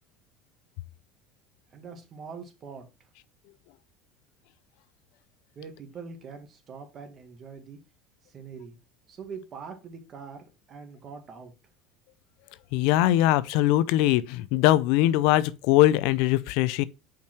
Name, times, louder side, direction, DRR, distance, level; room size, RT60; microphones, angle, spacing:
voice 1, 1.7-3.1 5.5-7.8 8.2-8.8 9.1-11.5, right 5 dB, 35° right, 1.9 m, -43 dB
voice 2, 12.7-16.8, left 14 dB, 70° left, 0.5 m, -21 dB
5.6 x 5.2 x 4.5 m
supercardioid pair, 125°, 0 cm